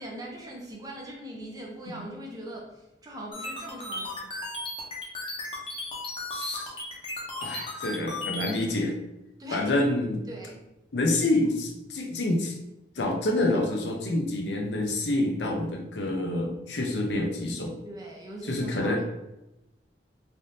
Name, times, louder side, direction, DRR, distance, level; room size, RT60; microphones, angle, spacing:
voice 1, 0.0-4.3 9.4-9.7 10.3-10.7 17.8-19.0, right 1 dB, 20° right, -1 dB, 0.5 m, -41 dB
sound 1, 3.3-8.5, left 2 dB, 30° left, 0.7 m, -35 dB
voice 2, 6.3-6.7 7.4-9.0 9.5-10.2 10.9-12.5 13.0-17.7 18.4-19.1, left 1 dB, 70° left, 1 dB, 0.6 m, -27 dB
3.4 x 2.6 x 2.6 m, 0.94 s
head